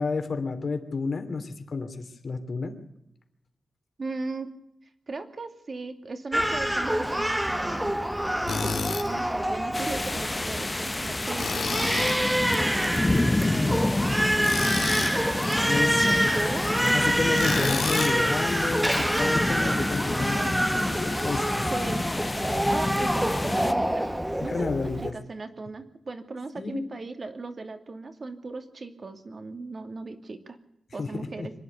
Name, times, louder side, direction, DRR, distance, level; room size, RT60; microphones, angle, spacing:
voice 1, 0.0-2.7 15.7-16.4 16.9-20.6 21.0-21.7 24.4-25.1 26.6-26.9 31.0-31.5, left 4 dB, 60° left, 6 dB, 3.0 m, -31 dB
voice 2, 4.0-4.5 5.1-8.0 8.4-16.9 18.8-19.8 20.3-21.0 21.7-22.1 22.7-24.1 24.4-24.7 25.1-30.6 30.9-31.5, right 3 dB, 50° right, 7 dB, 2.5 m, -38 dB
Crying sobbing, 6.3-25.1, equal, 5° right, 1.3 m, -27 dB
Tools, 8.5-9.1 11.4-12.2 14.4-15.2 17.4-18.2, left 5 dB, 80° left, 2.3 m, -30 dB
sound 1, 9.7-23.7, left 2 dB, 20° left, 0.9 m, -28 dB
25.5 x 11.0 x 9.4 m, 0.83 s
wide cardioid pair, 100°, 0 cm